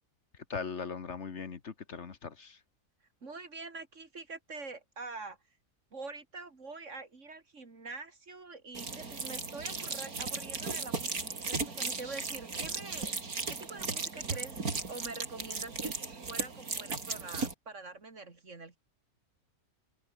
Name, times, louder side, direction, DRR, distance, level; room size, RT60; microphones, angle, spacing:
voice 1, 0.5-2.6, left 5 dB, 55° left, 1.6 m, -39 dB
voice 2, 3.2-5.4 5.9-13.1 13.5-14.6 14.9-18.8, right 3 dB, 55° right, 3.1 m, -45 dB
sound 1, 8.7-17.5, right 4 dB, 90° right, 3.6 m, -36 dB
open air
omnidirectional pair, 1.5 m